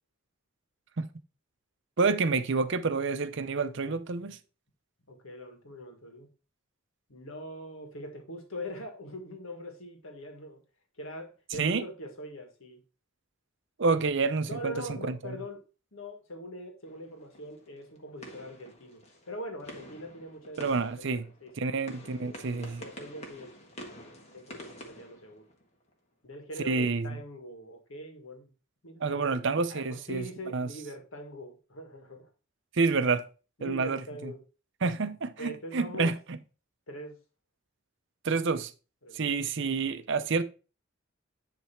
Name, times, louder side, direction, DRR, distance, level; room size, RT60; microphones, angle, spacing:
voice 1, 2.0-4.4 11.5-11.9 13.8-15.2 20.6-21.3 21.6-22.8 26.6-27.1 29.0-30.3 30.5-30.7 32.7-33.2 33.6-34.3 34.8-36.4 38.2-38.7 39.1-40.4, right 4 dB, 60° right, 0.6 m, -28 dB
voice 2, 5.1-6.3 7.1-10.6 11.0-12.8 14.5-15.6 15.9-21.7 22.2-23.5 24.3-25.4 26.2-28.5 28.8-29.3 29.7-32.3 33.6-34.4 35.4-36.1 36.9-37.2 39.0-39.3, equal, 75° left, 1.8 m, -42 dB
sound 1, 16.8-25.9, equal, 30° left, 1.5 m, -49 dB
10.0 x 3.4 x 4.4 m
head